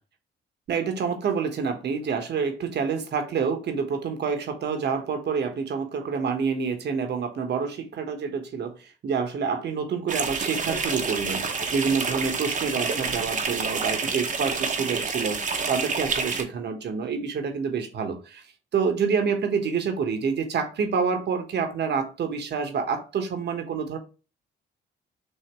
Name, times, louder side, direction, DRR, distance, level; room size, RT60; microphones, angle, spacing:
voice 1, 0.7-18.4 18.7-24.0, right 6 dB, 60° right, 1.2 m, -27 dB
sound 1, 10.1-16.4, right 4 dB, 40° right, 0.9 m, -28 dB
6.4 x 2.8 x 3.0 m
cardioid pair, 90°, 20 cm